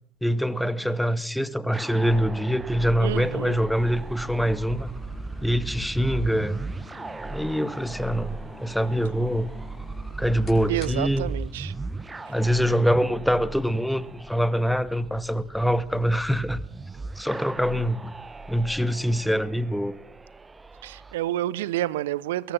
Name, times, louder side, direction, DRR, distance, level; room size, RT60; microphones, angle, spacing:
voice 1, 0.2-4.9 5.4-6.6 7.2-9.5 10.2-11.3 12.3-16.6 17.2-18.1 18.5-20.0, equal, ahead, 2.0 m, -24 dB
sound 1, 1.7-21.1, right 3 dB, 20° right, 1.5 m, -38 dB
voice 2, 3.0-3.6 10.7-11.7 20.8-22.5, right 14 dB, 70° right, 0.9 m, -29 dB
sound 2, 3.7-19.7, left 4 dB, 35° left, 5.8 m, -49 dB
24.5 x 22.0 x 6.0 m
figure-of-eight pair, 60°, 0 cm